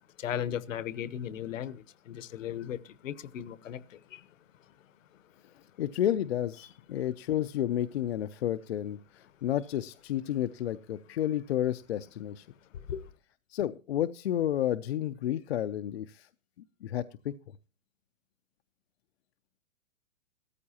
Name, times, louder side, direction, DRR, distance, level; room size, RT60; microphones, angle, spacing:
voice 1, 0.2-2.8 3.0-3.8 4.1-4.2 12.9-13.0, left 10 dB, 70° left, 1.0 m, -36 dB
voice 2, 5.8-12.5 13.5-16.3 16.8-17.3, left 11 dB, 55° left, 0.5 m, -31 dB
15.5 x 13.5 x 2.8 m
hypercardioid pair, 170°, 40 cm